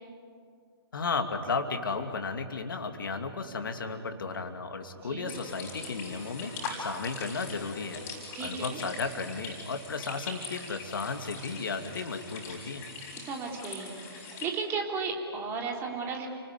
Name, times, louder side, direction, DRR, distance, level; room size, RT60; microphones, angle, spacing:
voice 1, 0.9-6.5 6.8-8.0 8.4-12.8, left 4 dB, 55° left, 7 dB, 2.6 m, -34 dB
sound 1, 5.3-14.5, left 4 dB, 20° left, 6.4 m, -42 dB
voice 2, 8.3-8.8 13.2-16.3, right 4 dB, 15° right, 1 dB, 3.4 m, -35 dB
30.0 x 20.0 x 9.5 m, 2.2 s
figure-of-eight pair, 130°, 13 cm